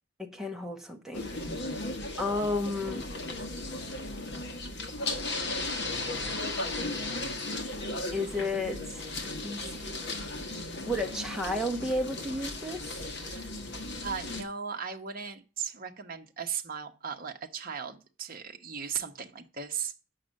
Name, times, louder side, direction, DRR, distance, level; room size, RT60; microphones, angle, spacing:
voice 1, 0.2-1.3 2.2-3.1 8.1-9.1 9.4-9.9 10.8-13.0, left 1 dB, ahead, 1.2 m, -32 dB
sound 1, 1.1-14.4, left 2 dB, 50° left, 1.5 m, -36 dB
voice 2, 14.0-19.9, right 7 dB, 40° right, 1.0 m, -37 dB
8.6 x 6.4 x 6.4 m
head